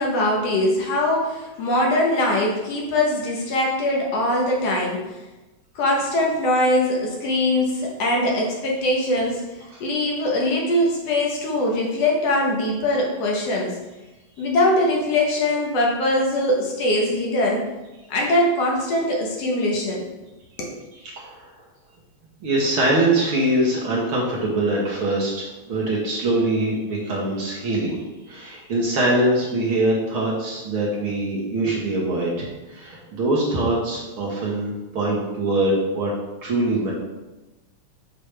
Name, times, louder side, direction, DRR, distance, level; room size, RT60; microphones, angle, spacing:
voice 1, 0.0-5.1 5.8-9.5 9.8-13.8 14.4-17.7 18.1-20.1 20.6-20.8, left 1 dB, 65° left, -1 dB, 2.0 m, -22 dB
voice 2, 21.0-21.5 22.4-28.0 28.3-36.1 36.4-36.9, right 1 dB, 55° right, -4 dB, 1.8 m, -23 dB
6.7 x 6.6 x 3.3 m, 1.1 s
omnidirectional pair, 3.3 m